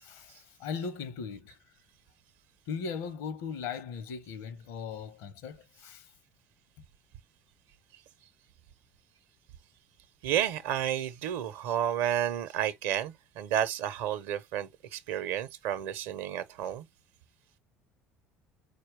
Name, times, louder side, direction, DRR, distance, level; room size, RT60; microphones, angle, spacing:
voice 1, 0.0-1.6 2.7-6.1, left 6 dB, 60° left, 0.8 m, -38 dB
voice 2, 10.2-16.9, right 10 dB, 60° right, 0.7 m, -31 dB
4.5 x 2.3 x 4.7 m
figure-of-eight pair, 60°, 7 cm